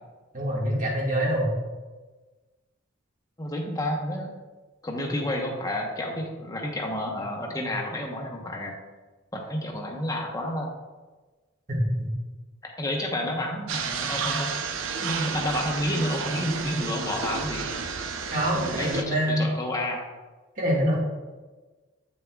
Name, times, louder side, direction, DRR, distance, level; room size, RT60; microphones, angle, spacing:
voice 1, 0.3-1.4 11.7-12.1 18.3-19.4 20.6-21.0, equal, 40° right, -3 dB, 1.8 m, -25 dB
voice 2, 3.4-4.3 4.8-8.7 9.3-10.7 12.6-14.5 15.0-17.7 18.5-20.0, left 1 dB, 15° left, 1 dB, 1.0 m, -30 dB
sound 1, 13.7-19.0, right 5 dB, 80° right, 0.6 m, -31 dB
8.4 x 7.0 x 2.3 m, 1.3 s
head